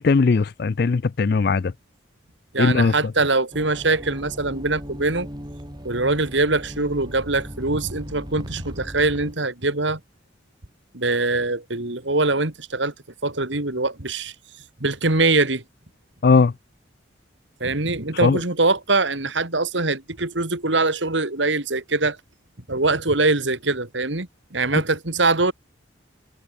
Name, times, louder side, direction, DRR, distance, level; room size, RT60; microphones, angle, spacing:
voice 1, 0.0-1.7 2.6-2.9 16.2-16.5 18.2-18.4 24.7-24.8, left 4 dB, 50° left, 0.4 m, -18 dB
voice 2, 2.5-5.3 5.8-10.0 10.9-12.9 13.2-14.3 14.8-15.6 17.6-22.2 22.7-25.5, right 3 dB, 70° right, 2.7 m, -23 dB
sound 1, 3.5-9.3, equal, 20° right, 6.6 m, -37 dB
head